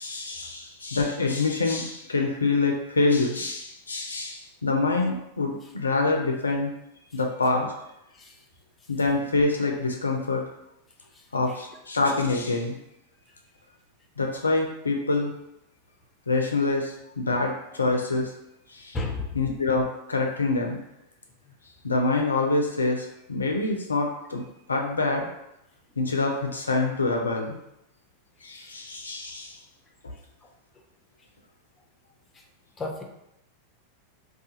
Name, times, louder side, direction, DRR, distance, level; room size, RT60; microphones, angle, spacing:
voice 1, 0.0-6.7 7.1-7.7 8.9-10.4 11.3-12.8 14.2-15.3 16.3-18.3 18.7-19.0 19.3-20.8 21.8-25.3 26.0-27.6 28.4-29.6, left 3 dB, 85° left, 1 dB, 0.4 m, -26 dB
voice 2, 18.9-19.4 30.4-30.5 32.8-33.0, left 3 dB, 20° left, 1 dB, 0.5 m, -32 dB
2.4 x 2.3 x 2.7 m, 0.83 s
figure-of-eight pair, 90°, 0 cm